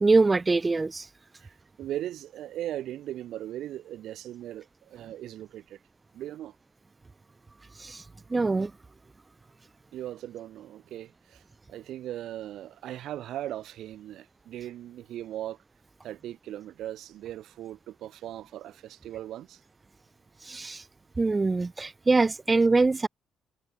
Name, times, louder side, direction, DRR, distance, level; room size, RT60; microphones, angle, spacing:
voice 1, 0.0-1.1 7.8-8.0 8.3-8.7 20.4-20.8 21.2-23.1, right 3 dB, 25° right, 0.5 m, -23 dB
voice 2, 1.8-5.8 6.1-6.6 9.9-11.4 11.7-15.6 16.0-19.6, right 12 dB, 80° right, 5.5 m, -38 dB
cardioid pair, 90°, 0 cm